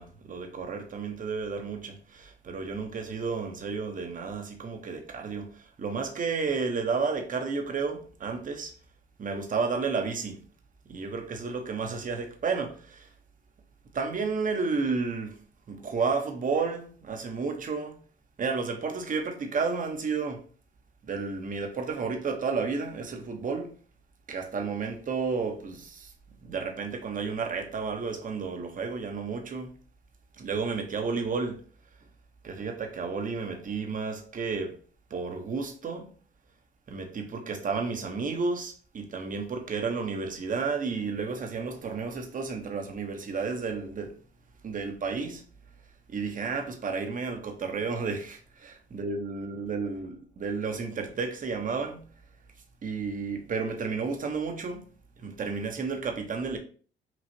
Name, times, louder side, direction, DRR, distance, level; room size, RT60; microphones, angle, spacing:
voice 1, 0.0-8.7 9.2-10.4 10.9-13.1 13.9-15.4 15.7-18.0 18.4-20.4 21.1-23.8 24.3-26.1 26.4-29.7 30.4-31.6 32.4-34.8 35.1-36.1 36.9-44.2 44.6-45.4 46.1-52.0 52.8-54.9 55.2-56.6, right 4 dB, 40° right, 1.0 m, -32 dB
6.0 x 2.4 x 2.8 m
cardioid pair, 90°, 20 cm